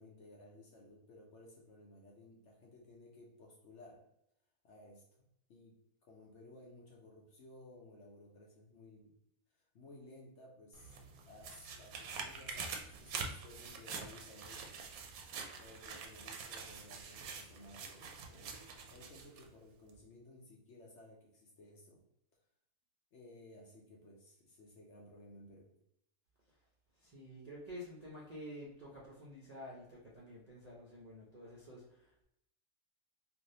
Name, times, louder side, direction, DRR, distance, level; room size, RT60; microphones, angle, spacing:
voice 1, 0.0-4.0 4.6-5.2 5.5-9.2 9.5-11.0 11.3-14.7 15.6-22.0 23.1-25.7, left 1 dB, 60° left, -1 dB, 0.8 m, -57 dB
sound 1, 10.7-19.5 19.9-20.0, right 5 dB, 75° right, 1.0 m, -46 dB
voice 2, 27.0-32.2, equal, 45° right, -6 dB, 0.5 m, -50 dB
3.3 x 2.6 x 2.7 m, 0.79 s
omnidirectional pair, 1.6 m